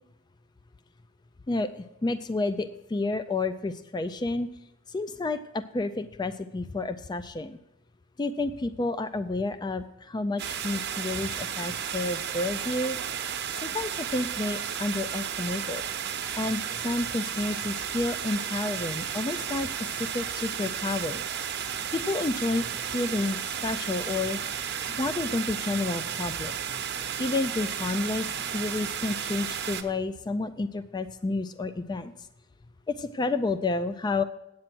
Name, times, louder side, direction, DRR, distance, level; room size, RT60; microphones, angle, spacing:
voice 1, 1.5-4.5 4.9-7.6 8.2-13.0 13.5-15.8 16.4-21.2 21.9-24.4 24.9-26.6 27.2-32.1 32.9-34.2, left 2 dB, 20° left, 12 dB, 0.3 m, -30 dB
sound 1, 10.4-29.8, right 8 dB, 55° right, 0.9 m, -33 dB
9.0 x 8.5 x 6.0 m, 0.86 s
head